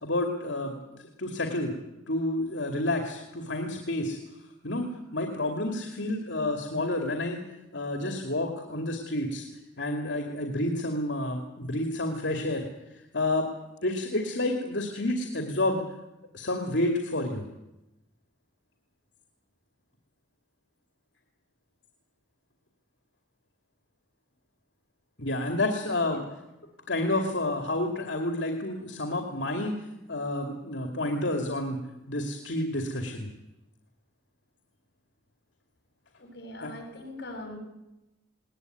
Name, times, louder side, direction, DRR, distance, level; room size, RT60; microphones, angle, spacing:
voice 1, 0.0-1.7 2.1-4.2 4.6-4.9 5.1-7.4 7.7-9.5 9.8-12.7 13.1-13.5 13.8-15.8 16.3-17.4 25.2-26.2 26.9-29.7 30.1-31.8 32.1-33.3 36.6-36.7, left 1 dB, 85° left, 3 dB, 2.6 m, -29 dB
voice 2, 36.1-37.6, left 1 dB, 65° left, 4 dB, 7.3 m, -41 dB
20.5 x 19.0 x 9.5 m, 0.95 s
head